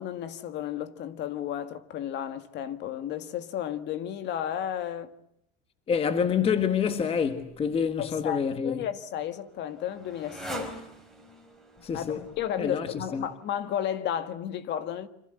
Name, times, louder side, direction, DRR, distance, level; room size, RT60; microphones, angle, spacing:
voice 1, 0.0-5.1 8.0-10.7 11.9-15.1, left 10 dB, 35° left, 1.7 m, -33 dB
voice 2, 5.9-8.8 11.8-12.2 12.6-12.9 13.1-13.3, left 7 dB, 20° left, 1.4 m, -27 dB
Motorcycle, 8.5-13.8, right 1 dB, ahead, 4.6 m, -44 dB
28.5 x 26.5 x 7.9 m
cardioid pair, 165°, 31 cm